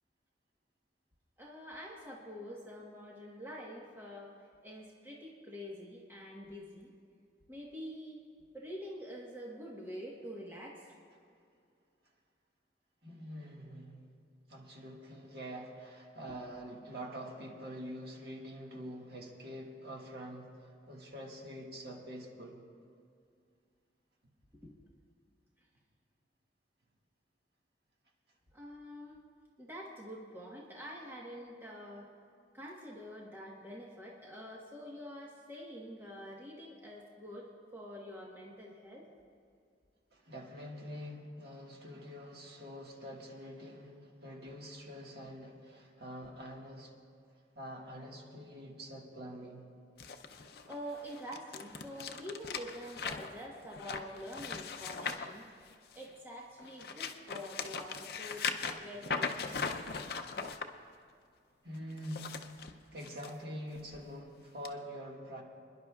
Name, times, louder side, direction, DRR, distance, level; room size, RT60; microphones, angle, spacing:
voice 1, 1.4-4.3 4.6-6.9 7.5-8.2 8.5-10.9 24.6-24.7 28.5-29.2 29.6-32.1 32.5-39.1 50.7-55.5 55.9-59.4, equal, 10° right, -3 dB, 1.2 m, -46 dB
voice 2, 13.0-14.1 14.5-22.6 40.1-46.9 47.5-49.6 61.6-62.3 62.9-65.4, equal, 60° right, -1 dB, 1.7 m, -45 dB
sound 1, 50.0-56.1 56.6-60.6 61.9-63.3 63.7-64.0 64.6-64.7, left 5 dB, 55° left, 0.6 m, -39 dB
30.0 x 10.5 x 2.4 m, 2.3 s
head